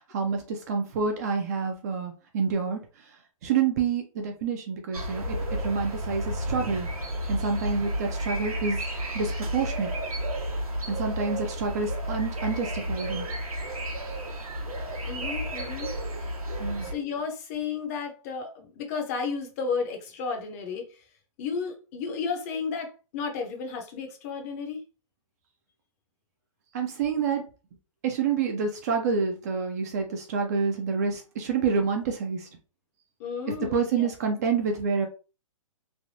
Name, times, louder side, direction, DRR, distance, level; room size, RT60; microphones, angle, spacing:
voice 1, 0.1-2.8 3.4-6.9 7.3-8.8 9.1-9.9 10.9-13.3 16.6-16.9 26.7-27.5 28.0-32.5 33.5-35.1, right 5 dB, 30° right, 0.4 m, -28 dB
sound 1, 4.9-16.9, equal, 85° right, 1.1 m, -32 dB
voice 2, 15.1-15.9 16.8-21.0 21.4-24.8 33.2-34.1, left 5 dB, 25° left, 0.6 m, -33 dB
3.3 x 2.2 x 2.6 m
hypercardioid pair, 150°, 18 cm